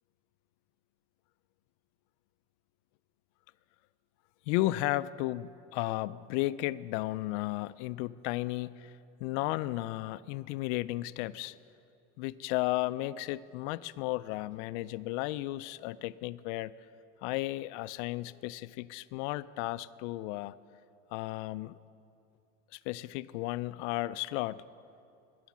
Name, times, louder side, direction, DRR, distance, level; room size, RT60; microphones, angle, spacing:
voice 1, 4.5-8.9 9.2-11.6 12.2-16.7 17.2-20.5 21.1-21.8 22.7-24.6, left 17 dB, 90° left, 17 dB, 0.5 m, -34 dB
13.0 x 10.5 x 7.3 m, 2.6 s
cardioid pair, 165°, 34 cm